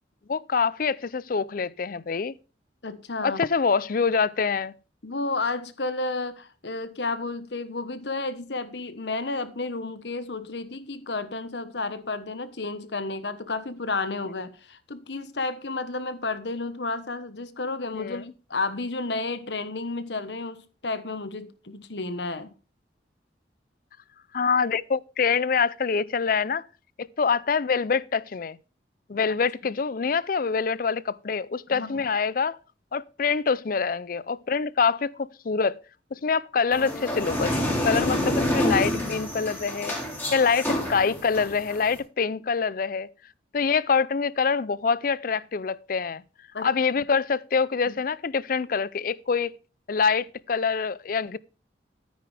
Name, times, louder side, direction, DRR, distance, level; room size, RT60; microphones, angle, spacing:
voice 1, 0.3-2.3 3.2-4.7 17.9-18.2 24.3-26.7 27.0-28.6 29.1-32.6 32.9-35.8 36.1-37.5 37.8-39.9 40.3-43.1 43.5-46.2 46.6-49.5 49.9-51.4, left 5 dB, 50° left, 0.5 m, -25 dB
voice 2, 2.8-3.4 5.0-22.5 31.7-32.0 46.5-46.7 47.9-48.0, left 3 dB, 70° left, 1.2 m, -32 dB
sound 1, 36.7-42.0, left 1 dB, 10° left, 3.8 m, -28 dB
13.0 x 9.6 x 3.4 m
head